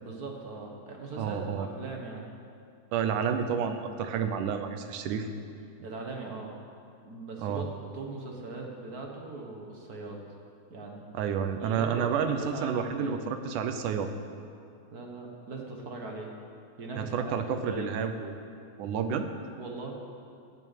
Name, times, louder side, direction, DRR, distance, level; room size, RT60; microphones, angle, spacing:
voice 1, 0.0-2.2 5.8-6.5 7.0-7.6 7.9-10.2 10.7-11.0 11.6-13.2 14.9-16.3 16.8-17.3 17.6-17.9 19.6-20.0, right 3 dB, 45° right, 1 dB, 1.2 m, -40 dB
voice 2, 1.2-1.7 2.9-5.3 7.4-7.7 11.1-14.1 16.9-18.3 18.8-19.3, right 7 dB, 85° right, 8 dB, 2.4 m, -30 dB
15.5 x 6.6 x 9.1 m, 2.4 s
omnidirectional pair, 3.5 m